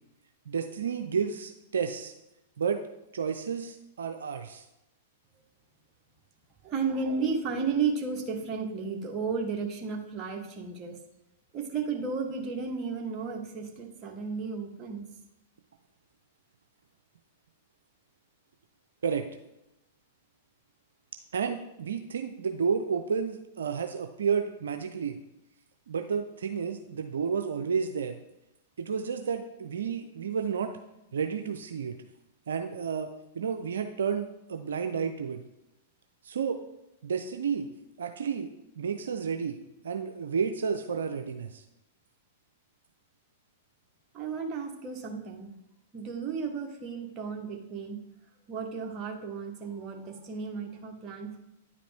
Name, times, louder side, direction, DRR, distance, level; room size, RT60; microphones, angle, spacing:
voice 1, 0.5-2.1 2.6-2.8 3.1-4.6 19.0-19.3 21.3-25.2 25.9-28.2 28.8-30.7 31.1-32.0 32.5-33.1 33.4-35.4 36.2-36.6 37.0-37.7 38.0-38.5 38.8-41.6, right 6 dB, 75° right, 6 dB, 0.5 m, -31 dB
voice 2, 6.6-11.0 11.5-15.1 44.1-45.5 45.9-48.0 48.5-51.4, right 5 dB, 30° right, 2 dB, 1.3 m, -33 dB
9.7 x 5.0 x 3.4 m, 0.91 s
hypercardioid pair, 105°, 0 cm